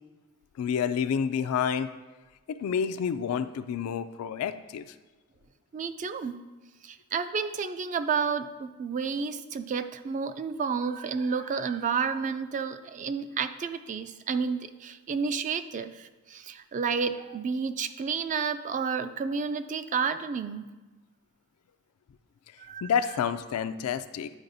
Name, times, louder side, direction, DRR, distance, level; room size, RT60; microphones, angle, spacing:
voice 1, 0.6-1.9 2.5-4.8 22.8-24.3, left 7 dB, 70° left, 10 dB, 0.3 m, -29 dB
voice 2, 5.7-6.4 6.8-20.7 22.6-22.9, right 5 dB, 35° right, 10 dB, 0.3 m, -31 dB
9.9 x 4.7 x 2.6 m, 1.2 s
head